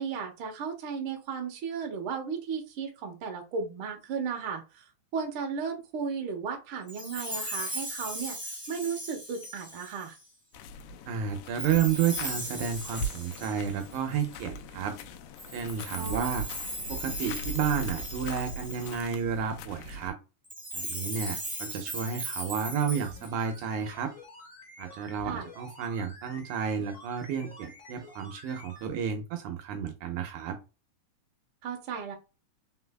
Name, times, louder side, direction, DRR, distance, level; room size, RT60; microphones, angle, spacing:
voice 1, 0.0-4.8 5.1-8.4 8.7-10.2 16.0-16.3 25.2-25.5 31.6-32.1, right 6 dB, 55° right, 2 dB, 1.6 m, -35 dB
Chime, 6.9-10.2 11.6-14.4 15.4-19.2 20.4-23.6, equal, 5° right, 0.8 m, -38 dB
sound 1, 10.5-20.1, equal, 85° left, 2.1 m, -40 dB
voice 2, 11.1-15.0 15.5-16.4 16.9-20.2 20.7-24.1 24.8-30.6, right 7 dB, 75° right, 5 dB, 2.1 m, -31 dB
sound 2, 22.9-28.9 29.2-29.3, left 2 dB, 30° left, 2.0 m, -49 dB
4.7 x 4.0 x 2.2 m, 0.29 s
omnidirectional pair, 3.6 m